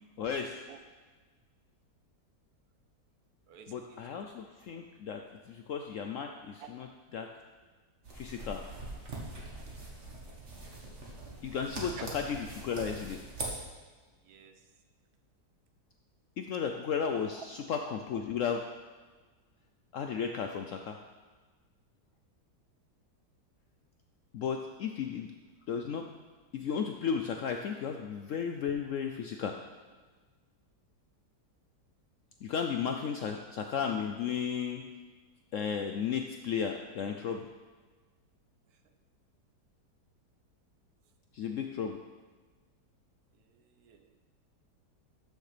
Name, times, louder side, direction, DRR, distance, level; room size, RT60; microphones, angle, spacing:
voice 1, 0.2-0.6 3.7-6.9 7.1-7.3 8.1-8.6 11.4-13.2 16.4-18.6 19.9-21.0 24.3-25.3 25.7-26.0 26.5-29.5 32.4-34.8 35.5-37.5 41.3-42.0, left 7 dB, 75° left, 4 dB, 0.7 m, -34 dB
voice 2, 3.5-4.0 6.6-6.7 11.5-12.1 14.2-14.7 17.4-17.5 38.7-38.8 43.3-44.2, right 8 dB, 70° right, 7 dB, 1.1 m, -52 dB
sound 1, 8.0-13.5, right 2 dB, 45° right, 1.8 m, -42 dB
13.5 x 6.5 x 3.3 m, 1.3 s
omnidirectional pair, 1.8 m